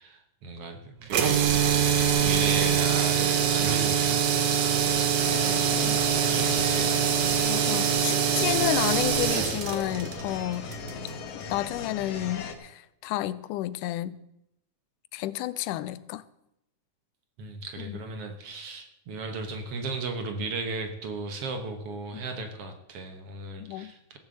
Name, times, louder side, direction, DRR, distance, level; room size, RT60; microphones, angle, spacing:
voice 1, 0.0-1.4 2.2-7.4 17.4-24.2, right 3 dB, 60° right, 6 dB, 1.9 m, -36 dB
sound 1, 1.1-11.2, right 8 dB, 75° right, 2.7 m, -24 dB
sound 2, 5.2-12.5, left 5 dB, 60° left, 2.0 m, -37 dB
voice 2, 7.4-10.7 11.5-14.2 15.1-16.2 17.8-18.0 22.1-22.2 23.6-23.9, left 15 dB, 90° left, 16 dB, 2.2 m, -31 dB
15.5 x 7.1 x 7.7 m, 0.84 s
omnidirectional pair, 3.6 m